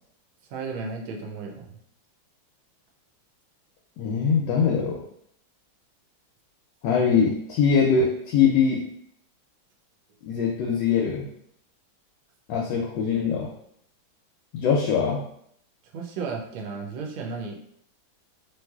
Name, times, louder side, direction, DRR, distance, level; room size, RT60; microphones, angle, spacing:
voice 1, 0.5-1.8 15.9-17.5, right 4 dB, 85° right, 0 dB, 1.4 m, -34 dB
voice 2, 4.0-5.0 6.8-8.8 10.2-11.3 12.5-13.5 14.5-15.2, left 6 dB, 75° left, -1 dB, 1.1 m, -22 dB
3.1 x 3.1 x 2.3 m, 0.71 s
omnidirectional pair, 2.1 m